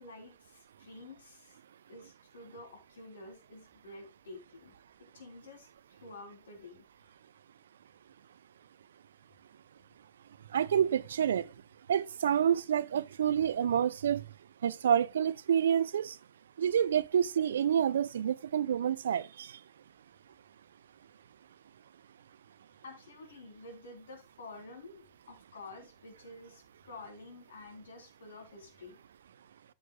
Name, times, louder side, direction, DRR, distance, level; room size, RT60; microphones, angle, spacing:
voice 1, 0.0-1.6 1.9-4.7 5.0-6.8 22.8-29.0, left 2 dB, 70° left, 3.3 m, -50 dB
voice 2, 10.5-11.5 11.9-14.2 14.6-16.2 16.6-19.6, right 9 dB, 70° right, 0.5 m, -28 dB
13.5 x 6.5 x 2.3 m
figure-of-eight pair, 95°, 0 cm